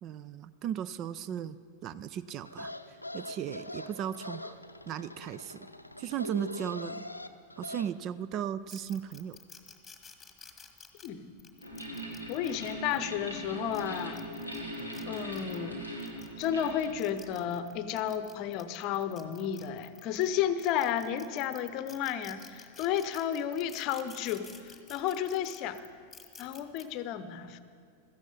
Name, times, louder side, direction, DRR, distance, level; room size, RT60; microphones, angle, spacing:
voice 1, 0.0-2.7 3.1-4.6 4.9-5.7 6.0-7.1 7.6-9.4, right 9 dB, 35° right, 16 dB, 0.4 m, -36 dB
sound 1, 2.4-7.9, left 1 dB, 85° left, 0.6 m, -42 dB
sound 2, 8.7-13.0 13.6-15.6 16.0-20.3 20.6-26.8, left 5 dB, 15° left, 1.4 m, -52 dB
voice 2, 11.0-11.3 12.3-14.2 15.1-15.9 16.4-25.8 26.4-27.6, left 9 dB, 40° left, 13 dB, 0.8 m, -32 dB
sound 3, 11.6-17.4, equal, 80° right, 2.0 m, -40 dB
16.0 x 13.5 x 5.4 m, 2.2 s
figure-of-eight pair, 90°, 0 cm